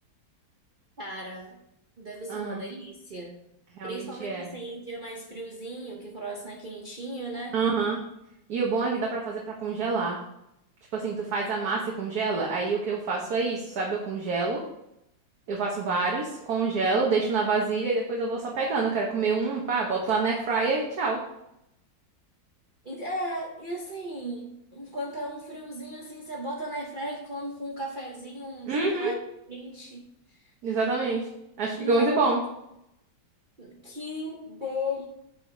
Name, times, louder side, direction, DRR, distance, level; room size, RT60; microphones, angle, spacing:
voice 1, 1.0-1.6 2.0-3.4 3.8-7.6 22.8-29.1 29.5-30.5 31.8-32.4 33.6-35.0, equal, 40° right, -2 dB, 0.8 m, -36 dB
voice 2, 2.3-2.6 3.8-4.5 7.5-8.0 8.5-10.2 10.9-14.6 15.5-21.2 28.7-29.1 30.6-31.2 31.6-32.4, right 4 dB, 60° right, -1 dB, 1.5 m, -27 dB
8.0 x 4.9 x 4.9 m, 0.81 s
omnidirectional pair, 2.0 m